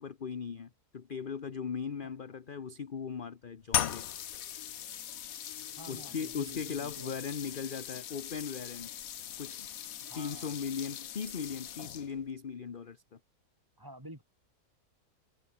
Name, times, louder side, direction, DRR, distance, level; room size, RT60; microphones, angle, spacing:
voice 1, 0.0-4.1 5.9-8.9 9.4-9.7 10.1-13.2, left 6 dB, 40° left, 1.1 m, -38 dB
sound 1, 3.7-12.3, left 10 dB, 65° left, 1.3 m, -39 dB
voice 2, 5.8-7.1 10.1-10.5 13.8-14.2, right 1 dB, 15° right, 5.0 m, -49 dB
omnidirectional pair, 1.6 m